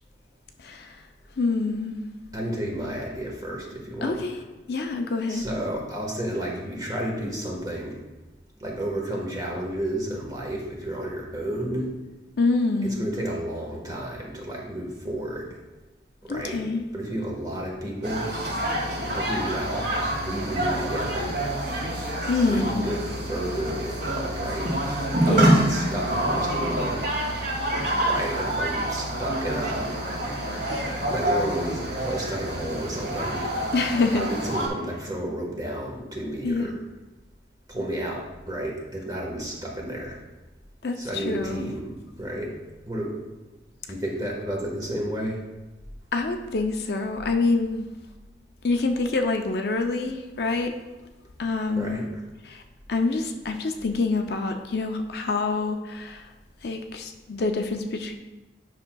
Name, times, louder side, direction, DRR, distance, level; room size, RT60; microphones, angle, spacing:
voice 1, 0.6-1.1 1.4-2.1 4.0-4.4 4.7-5.5 12.4-13.0 16.3-16.8 22.3-22.9 25.3-25.8 33.7-34.2 36.4-36.7 40.8-41.8 46.1-47.9 48.6-50.8 51.4-52.0 52.4-52.6 52.9-56.3 56.6-58.1, left 3 dB, 55° left, 4 dB, 0.5 m, -26 dB
voice 2, 2.3-4.2 5.3-8.0 8.6-11.9 13.0-15.6 16.2-16.6 16.9-18.3 19.0-19.9 20.2-21.4 22.5-24.7 25.3-27.2 28.1-29.9 31.1-33.4 34.1-36.8 37.7-40.2 41.0-42.5 42.9-43.2 43.9-45.4 51.8-52.0, right 1 dB, 20° right, -2 dB, 1.3 m, -31 dB
sound 1, 18.0-34.7, right 1 dB, 60° right, 2.1 m, -27 dB
9.6 x 6.0 x 2.3 m, 1.1 s
head